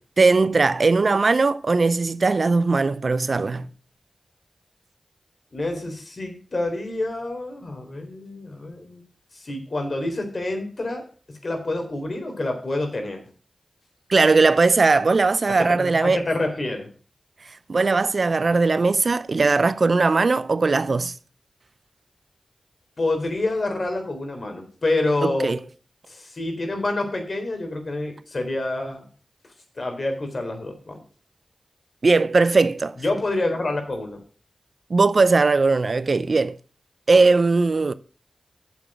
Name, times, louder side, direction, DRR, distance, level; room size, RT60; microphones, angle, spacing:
voice 1, 0.2-3.7 14.1-16.2 17.7-21.1 25.2-25.6 32.0-33.0 34.9-36.6 37.1-37.9, right 3 dB, 60° right, 0.6 m, -19 dB
voice 2, 5.5-9.0 9.3-11.0 11.3-13.3 15.5-16.9 23.0-25.6 26.1-29.1 29.8-31.0 33.0-34.2, left 2 dB, 55° left, 3.8 m, -27 dB
8.8 x 7.2 x 6.2 m
cardioid pair, 40°, 0 cm